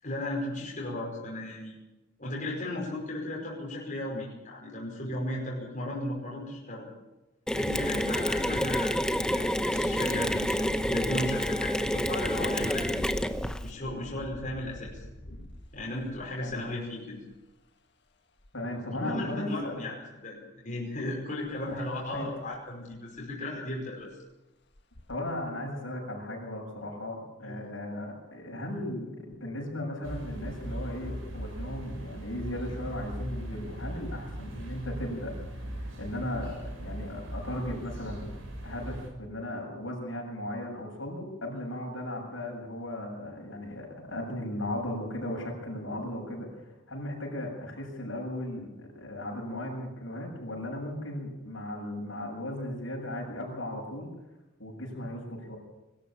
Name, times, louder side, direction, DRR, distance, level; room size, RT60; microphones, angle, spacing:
voice 1, 0.0-1.8 2.2-6.9 7.5-13.0 13.6-15.0 15.3-15.4 15.7-17.2 18.9-24.1 27.4-27.6, left 1 dB, 40° left, -4 dB, 5.3 m, -35 dB
Mechanisms, 7.5-13.7, equal, 5° left, 0.8 m, -28 dB
Engine, 11.8-17.5 18.4-18.5 18.9-19.7 21.4-21.6 21.9-22.0 22.5-22.6 22.9-23.4 24.0-24.1 24.7-25.2, left 1 dB, 60° left, 1.7 m, -46 dB
voice 2, 18.5-19.8 21.7-22.3 25.1-35.3 35.7-38.3 38.6-54.1 54.6-55.6, left 1 dB, 80° left, -1 dB, 7.7 m, -36 dB
sound 1, 30.0-39.1, right 1 dB, 90° right, 5.7 m, -39 dB
23.0 x 13.5 x 8.7 m, 1.0 s
head